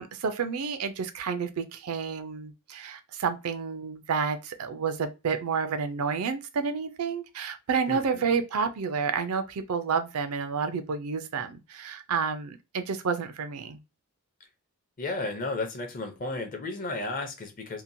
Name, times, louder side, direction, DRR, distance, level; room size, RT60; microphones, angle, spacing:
voice 1, 0.0-13.8, right 5 dB, 70° right, 0.4 m, -30 dB
voice 2, 7.9-8.2 15.0-17.8, left 2 dB, 40° left, 0.6 m, -33 dB
2.8 x 2.1 x 2.6 m
head